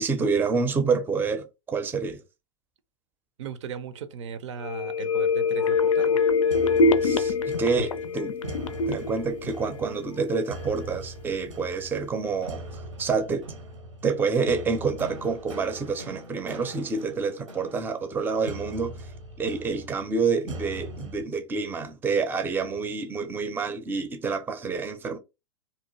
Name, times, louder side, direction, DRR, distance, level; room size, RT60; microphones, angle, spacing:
voice 1, 0.0-2.2 7.0-8.4 8.9-13.5 14.0-19.0 19.4-25.2, right 4 dB, 10° right, 0.5 m, -28 dB
voice 2, 3.4-6.2, right 7 dB, 65° right, 0.5 m, -37 dB
sound 1, 4.6-10.3 10.7-10.8, left 4 dB, 85° left, 0.4 m, -24 dB
sound 2, 6.5-21.2, right 1 dB, 90° right, 1.0 m, -41 dB
2.7 x 2.2 x 2.9 m
hypercardioid pair, 105°, 16 cm